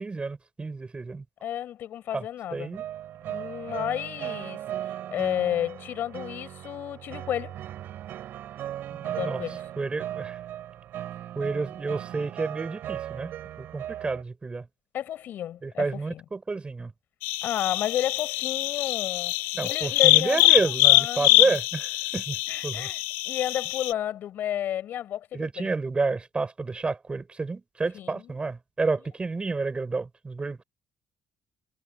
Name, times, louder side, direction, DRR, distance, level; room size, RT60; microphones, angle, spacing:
voice 1, 0.0-1.2 2.1-2.2 2.5-2.8 8.9-9.4 9.8-10.4 11.4-14.7 15.6-16.9 19.5-22.4 22.6-22.9 25.3-30.6, right 3 dB, 30° right, 5.8 m, -30 dB
voice 2, 1.4-2.8 3.3-7.6 9.0-9.6 14.9-16.2 17.4-19.4 19.6-21.6 22.5-25.7 27.9-28.4, left 11 dB, 70° left, 6.1 m, -32 dB
sound 1, 2.7-14.2, right 12 dB, 75° right, 7.2 m, -37 dB
sound 2, 17.2-23.9, left 21 dB, 90° left, 0.5 m, -23 dB
supercardioid pair, 60°, 3 cm